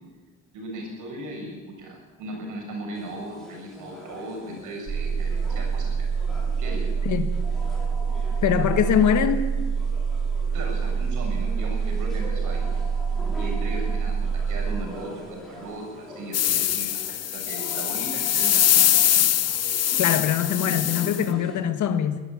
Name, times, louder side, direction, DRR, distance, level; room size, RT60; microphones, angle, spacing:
voice 1, 0.5-6.1 6.6-6.9 10.5-12.7 13.4-16.9 17.3-19.3, right 1 dB, 85° right, 1 dB, 7.2 m, -37 dB
sound 1, 2.9-21.6, equal, ahead, 6.0 m, -43 dB
sound 2, 4.9-14.9, right 5 dB, 50° right, 2.4 m, -26 dB
voice 2, 8.4-9.4 20.0-22.2, left 9 dB, 75° left, 10 dB, 1.9 m, -22 dB
sound 3, 16.3-21.2, left 11 dB, 55° left, 0.9 m, -22 dB
22.5 x 13.5 x 8.8 m, 1.3 s
cardioid pair, 90°, 30 cm